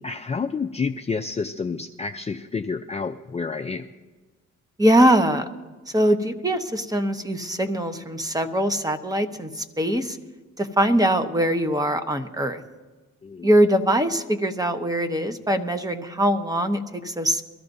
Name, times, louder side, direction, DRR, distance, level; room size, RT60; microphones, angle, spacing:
voice 1, 0.0-3.8 13.2-13.5, left 5 dB, 20° left, 6 dB, 0.5 m, -29 dB
voice 2, 4.8-5.5 5.9-10.2 10.6-12.6 13.4-17.4, right 1 dB, 10° right, 8 dB, 1.0 m, -22 dB
23.0 x 13.5 x 2.7 m, 1.3 s
cardioid pair, 90°, 30 cm